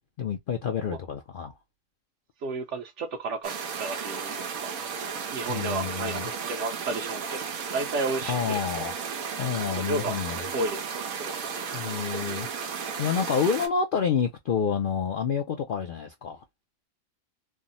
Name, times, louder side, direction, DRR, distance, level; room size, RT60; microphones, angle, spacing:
voice 1, 0.2-1.5 5.5-6.3 8.3-8.9 9.4-10.4 11.7-12.7 13.0-16.4, left 6 dB, 65° left, 0.5 m, -28 dB
voice 2, 2.4-3.5 3.8-4.7 5.3-6.2 6.5-7.4 7.7-8.6 9.7-10.1 10.5-10.8 11.1-11.3, right 3 dB, 65° right, 1.0 m, -32 dB
sound 1, 3.4-13.7, right 6 dB, 85° right, 1.2 m, -34 dB
3.4 x 2.0 x 2.5 m
omnidirectional pair, 1.4 m